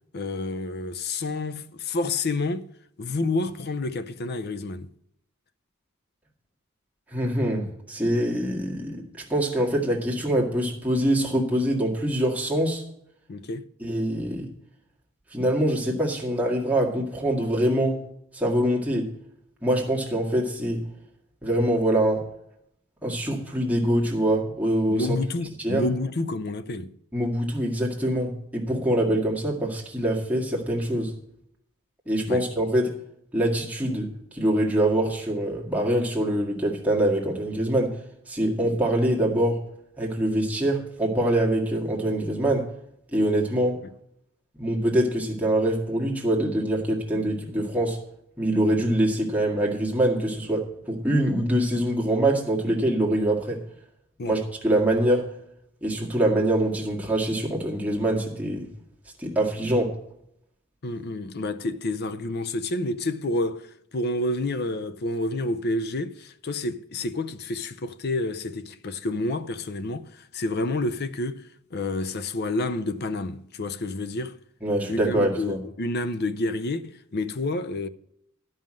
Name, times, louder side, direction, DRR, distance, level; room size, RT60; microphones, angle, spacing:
voice 1, 0.1-2.7 3.0-4.9 13.3-13.6 24.9-26.9 32.3-32.4 54.2-54.4 60.8-74.4 74.9-77.9, left 2 dB, 50° left, 0.6 m, -29 dB
voice 2, 7.1-9.0 9.3-12.8 13.8-14.5 15.3-18.0 18.3-19.1 19.6-20.8 21.4-22.2 23.0-25.2 25.6-25.8 27.1-31.1 32.1-32.9 33.3-38.0 38.3-39.6 40.0-42.7 43.1-43.8 44.6-48.0 48.4-53.6 54.3-55.3 55.8-58.7 59.2-59.9 74.6-75.6, right 1 dB, 5° right, 1.9 m, -24 dB
12.0 x 5.6 x 7.5 m
head